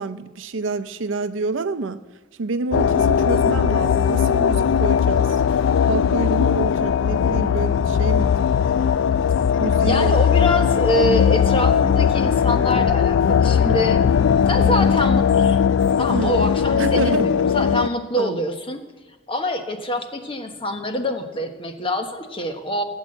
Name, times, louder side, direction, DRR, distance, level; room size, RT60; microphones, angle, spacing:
voice 1, 0.0-2.0 2.4-5.4 5.8-8.4 9.6-10.2 13.7-14.0 16.1-16.4 16.7-17.3 18.2-18.4, right 3 dB, 85° right, 12 dB, 0.6 m, -27 dB
sound 1, 2.7-17.9, left 7 dB, 75° left, 0.3 m, -18 dB
voice 2, 9.8-14.0 14.5-15.7 16.0-18.8 19.3-22.8, left 1 dB, 30° left, 5 dB, 1.2 m, -25 dB
16.5 x 8.3 x 7.9 m, 1.2 s
head